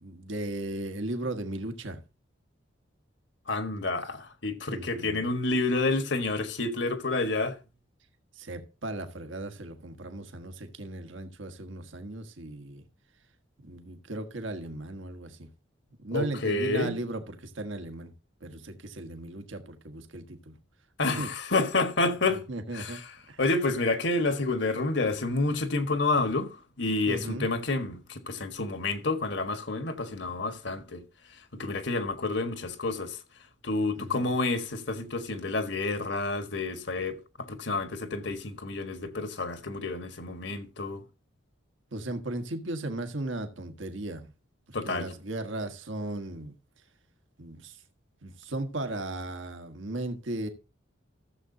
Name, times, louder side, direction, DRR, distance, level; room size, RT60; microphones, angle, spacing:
voice 1, 0.0-2.0 4.7-5.3 8.3-12.8 13.6-15.5 16.0-18.1 18.4-20.5 21.2-21.3 22.3-23.0 23.3-23.4 27.1-27.5 34.0-34.3 41.9-44.3 44.8-46.5 47.4-47.8 48.2-50.5, right 2 dB, 75° right, 1.5 m, -36 dB
voice 2, 3.5-7.6 16.1-16.9 21.0-22.4 22.7-23.0 23.4-31.0 31.5-33.2 33.6-41.0 44.7-45.1, left 3 dB, 65° left, 1.5 m, -29 dB
15.0 x 7.5 x 2.7 m
head